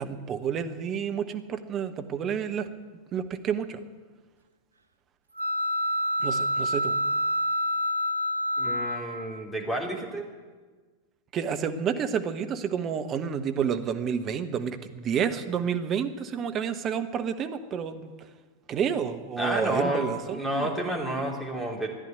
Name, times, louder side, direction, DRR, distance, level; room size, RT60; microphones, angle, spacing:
voice 1, 0.0-2.7 3.1-3.8 6.2-6.9 11.3-18.1 18.7-20.7, right 7 dB, 30° right, 8 dB, 1.2 m, -30 dB
sound 1, 5.4-9.4, equal, 80° right, 0.7 m, -27 dB
voice 2, 8.6-10.3 19.4-21.9, right 1 dB, ahead, -2 dB, 3.3 m, -30 dB
13.5 x 10.5 x 9.5 m, 1.4 s
figure-of-eight pair, 90°, 0 cm